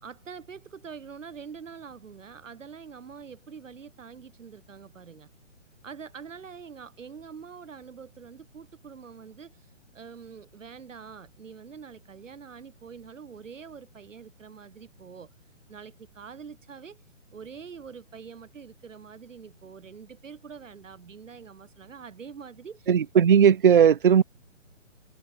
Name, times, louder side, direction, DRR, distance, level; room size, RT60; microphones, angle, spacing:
voice 1, 0.0-5.3 5.8-15.3 15.7-17.0 17.3-22.9, right 6 dB, 75° right, 1.9 m, -45 dB
voice 2, 22.9-24.2, right 8 dB, 45° right, 0.5 m, -17 dB
hypercardioid pair, 165°, 38 cm